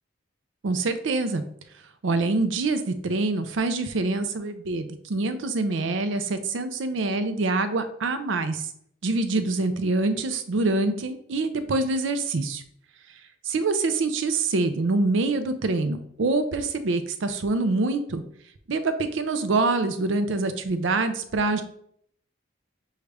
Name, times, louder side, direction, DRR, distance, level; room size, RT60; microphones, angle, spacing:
voice 1, 0.6-1.4 2.0-8.7 9.0-12.6 13.4-18.2 18.7-21.6, right 3 dB, 80° right, 10 dB, 0.5 m, -25 dB
6.4 x 2.4 x 3.3 m, 0.68 s
head